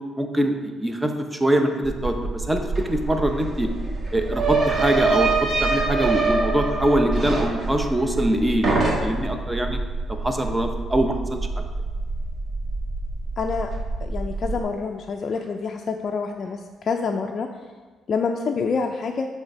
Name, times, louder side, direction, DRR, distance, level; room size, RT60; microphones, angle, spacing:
voice 1, 0.2-1.1 1.4-3.7 4.1-5.3 5.6-9.8 10.1-11.4, right 1 dB, 10° right, 5 dB, 0.7 m, -23 dB
sound 1, 1.8-14.6, right 2 dB, 80° right, 1.6 m, -30 dB
sound 2, 2.8-2.9 3.1-8.3 8.6-9.4, right 3 dB, 45° right, 1.2 m, -24 dB
voice 2, 13.4-13.7 14.0-17.5 18.1-19.3, left 5 dB, 50° left, 3 dB, 0.3 m, -27 dB
6.3 x 3.3 x 4.9 m, 1.4 s
cardioid pair, 90°, 0 cm